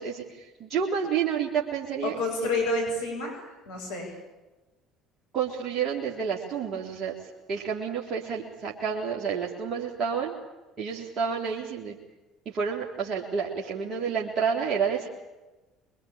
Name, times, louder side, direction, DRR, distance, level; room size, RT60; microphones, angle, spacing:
voice 1, 0.0-2.5 5.3-10.3 10.8-12.0 12.5-15.1, right 6 dB, 45° right, -2 dB, 3.4 m, -30 dB
voice 2, 2.0-4.1, left 2 dB, 70° left, 0 dB, 7.0 m, -29 dB
25.5 x 23.0 x 8.9 m, 1.1 s
figure-of-eight pair, 60°, 0 cm